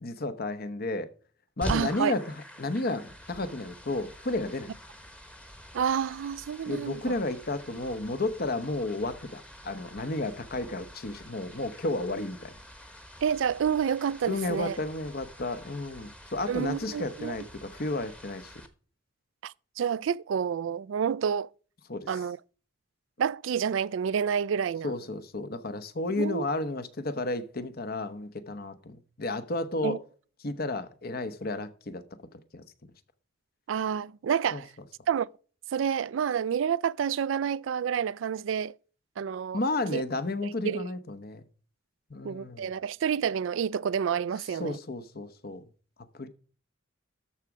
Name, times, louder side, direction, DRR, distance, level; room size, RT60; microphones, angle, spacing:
voice 1, 0.0-1.1 1.6-4.7 6.7-12.5 14.3-18.5 21.9-22.2 24.8-30.0 30.4-32.0 32.5-32.6 34.5-34.6 39.5-41.4 42.1-42.7 44.6-45.6 46.1-46.3, left 2 dB, 55° left, 1.0 m, -32 dB
sound 1, 1.6-18.7, equal, 5° left, 1.0 m, -45 dB
voice 2, 1.7-2.1 5.7-7.0 13.2-14.8 16.5-17.4 19.4-21.5 22.1-22.4 23.2-24.9 26.2-26.4 29.8-30.0 33.7-34.7 35.1-35.3 35.7-38.8 39.2-39.6 39.9-40.0 40.6-40.9 42.2-44.8, right 7 dB, 80° right, 0.3 m, -29 dB
13.0 x 4.8 x 5.1 m
head